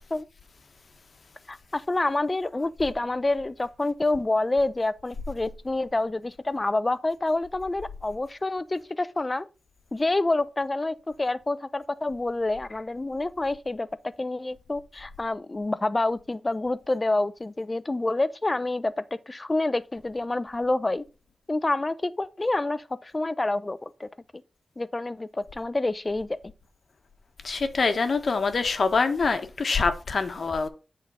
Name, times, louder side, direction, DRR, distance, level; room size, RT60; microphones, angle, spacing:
voice 1, 1.5-9.4 9.9-13.9 14.2-18.9 19.3-21.0 21.5-24.1 24.8-26.4, left 2 dB, 25° left, 0.6 m, -27 dB
voice 2, 27.4-30.7, left 4 dB, 60° left, 1.2 m, -25 dB
8.7 x 3.9 x 5.4 m
wide cardioid pair, 95°, 0 cm